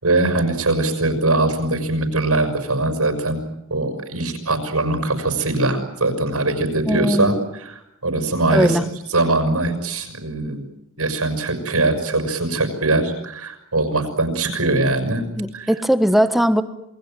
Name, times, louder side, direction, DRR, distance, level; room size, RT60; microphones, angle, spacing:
voice 1, 0.0-3.4 3.7-7.3 7.6-8.8 9.1-10.7 11.0-15.7, right 2 dB, 80° right, 7 dB, 6.1 m, -21 dB
voice 2, 6.9-7.4 8.5-8.9 15.4-16.6, equal, ahead, 10 dB, 1.4 m, -19 dB
28.0 x 21.0 x 9.2 m, 0.82 s
head